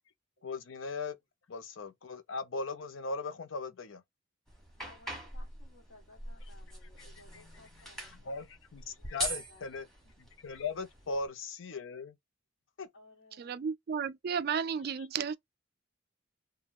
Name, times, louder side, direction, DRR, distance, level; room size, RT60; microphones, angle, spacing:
voice 1, 0.4-1.1 1.5-4.0 7.3-7.5 8.0-9.9 10.2-12.1 12.8-12.9, left 4 dB, 75° left, 0.6 m, -39 dB
sound 1, 4.5-11.3, right 1 dB, ahead, 1.2 m, -43 dB
voice 2, 4.8-8.5 8.9-9.7 9.9-10.0 10.8-11.0 12.9-13.6, left 2 dB, 60° left, 1.4 m, -60 dB
voice 3, 13.4-15.4, right 7 dB, 50° right, 0.3 m, -33 dB
3.5 x 2.2 x 2.4 m
head